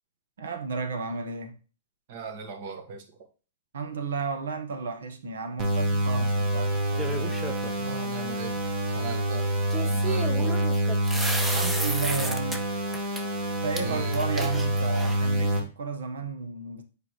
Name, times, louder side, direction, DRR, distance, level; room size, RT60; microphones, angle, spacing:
voice 1, 0.4-1.5 3.7-7.3 11.5-12.7 13.6-16.8, right 5 dB, 85° right, 1.2 m, -33 dB
voice 2, 2.1-3.0 6.1-6.3 7.8-9.5 9.8-10.6 13.8-14.3, right 5 dB, 50° right, 1.5 m, -39 dB
sound 1, 5.6-15.6, right 1 dB, 35° right, 1.6 m, -27 dB
sound 2, 7.0-7.7 9.7-12.6 12.9-13.2 13.8-13.9 14.1-15.3, right 2 dB, 10° right, 0.7 m, -33 dB
7.6 x 5.0 x 3.1 m
hypercardioid pair, 145°, 0 cm